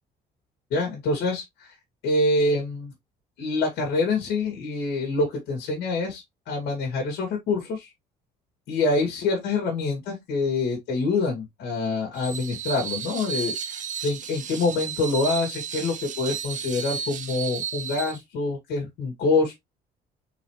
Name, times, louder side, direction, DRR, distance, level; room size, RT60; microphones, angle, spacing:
voice 1, 0.7-1.7 2.0-2.9 3.4-7.9 8.7-19.6, left 3 dB, 80° left, 2.1 m, -26 dB
Screech, 12.1-18.2, right 8 dB, 50° right, 0.9 m, -33 dB
4.1 x 4.1 x 3.1 m
cardioid pair, 110°, 17 cm